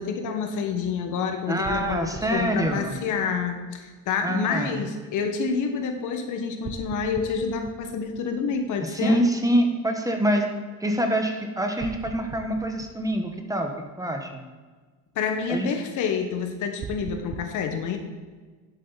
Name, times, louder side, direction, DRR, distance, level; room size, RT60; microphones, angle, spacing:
voice 1, 0.0-9.2 15.1-18.0, left 5 dB, 65° left, 5 dB, 1.5 m, -28 dB
voice 2, 1.5-2.9 4.2-4.8 8.8-14.4 15.5-15.7, right 1 dB, 10° right, 4 dB, 1.1 m, -26 dB
sound 1, 1.6-3.7 6.6-8.9 11.8-13.8 16.8-17.4, right 5 dB, 25° right, 0.5 m, -41 dB
11.0 x 7.9 x 4.1 m, 1.4 s
cardioid pair, 115°, 33 cm